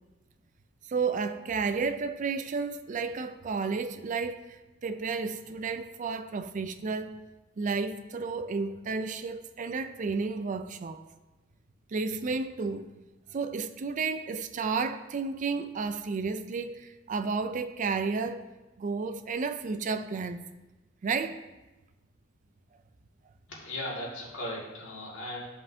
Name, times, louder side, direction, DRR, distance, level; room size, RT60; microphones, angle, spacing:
voice 1, 0.9-7.2 7.6-11.0 11.9-12.9 13.3-18.4 18.8-20.5 21.0-21.4, right 4 dB, 40° right, 0.4 m, -32 dB
voice 2, 23.5-25.4, left 1 dB, 80° left, 2.0 m, -37 dB
9.9 x 5.5 x 2.7 m
head